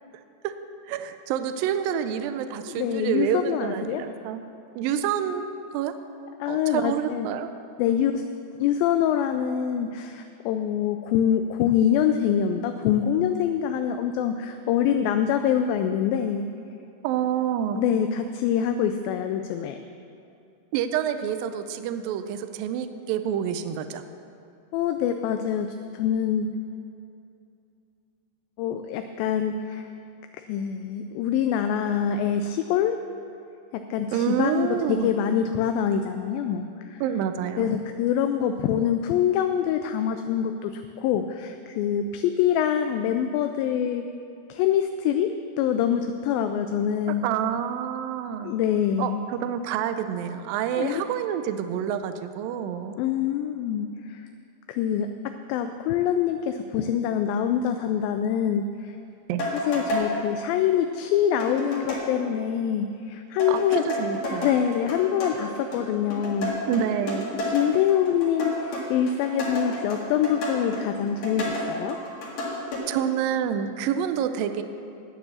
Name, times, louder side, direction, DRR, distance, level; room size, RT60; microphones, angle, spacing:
voice 1, 0.9-4.4 4.8-5.9 6.5-7.5 17.0-17.8 20.7-24.0 34.1-35.1 37.0-37.8 47.2-48.5 49.0-53.0 59.3-59.5 63.5-64.5 66.7-67.3 72.9-74.6, right 9 dB, 80° right, 9 dB, 2.2 m, -28 dB
voice 2, 2.7-4.0 6.4-7.3 7.8-8.2 8.6-16.5 17.8-19.8 24.7-25.7 25.9-26.5 28.6-29.9 30.5-33.0 33.7-37.0 37.6-44.1 44.5-45.3 45.6-47.3 48.4-49.2 50.8-51.0 53.0-54.3 54.7-55.1 55.5-59.0 59.7-63.8 64.4-66.6 67.4-72.0, left 9 dB, 80° left, 7 dB, 2.2 m, -25 dB
sound 1, 59.4-60.1 61.4-62.1 63.4-72.8, left 1 dB, 55° left, 3.2 m, -31 dB
9.4 x 9.2 x 7.1 m, 2.6 s
omnidirectional pair, 4.4 m